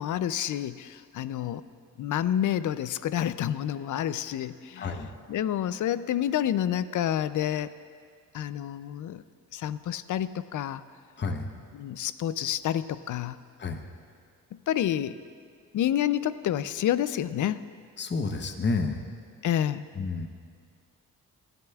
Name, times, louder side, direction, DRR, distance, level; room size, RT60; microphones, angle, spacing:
voice 1, 0.0-1.6 2.0-5.0 5.3-7.7 8.3-9.2 9.5-10.8 11.7-13.4 14.5-15.2 15.7-17.6 19.4-19.8, left 11 dB, 60° left, 15 dB, 0.5 m, -29 dB
voice 2, 4.8-5.1 11.2-11.5 13.6-13.8 18.0-19.1 19.9-20.3, left 4 dB, 30° left, 5 dB, 0.9 m, -30 dB
19.0 x 11.5 x 2.3 m, 2.2 s
cardioid pair, 105°, 36 cm